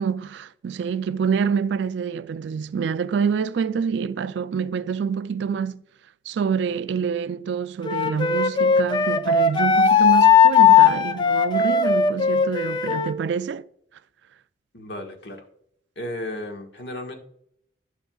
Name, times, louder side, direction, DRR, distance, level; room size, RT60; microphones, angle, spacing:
voice 1, 0.0-5.8 6.3-13.6, right 6 dB, 70° right, 0.3 m, -26 dB
Wind instrument woodwind instrument, 7.8-13.1, left 6 dB, 25° left, 0.4 m, -17 dB
voice 2, 14.7-15.4 16.0-17.2, left 1 dB, 65° left, 1.4 m, -34 dB
10.5 x 6.3 x 2.3 m
head